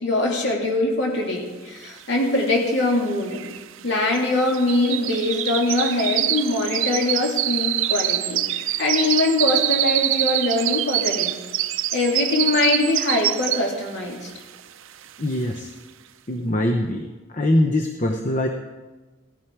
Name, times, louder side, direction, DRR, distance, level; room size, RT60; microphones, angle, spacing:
voice 1, 0.0-3.4 3.8-11.3 11.9-14.3, left 2 dB, 55° left, -1 dB, 2.9 m, -22 dB
sound 1, 2.2-2.3 2.4-13.9 14.3-14.6 15.0-15.1, right 13 dB, 70° right, 0.5 m, -25 dB
voice 2, 15.2-15.7 16.3-17.1 17.3-18.5, left 1 dB, 35° left, 4 dB, 0.8 m, -22 dB
16.5 x 11.0 x 4.7 m, 1.2 s
head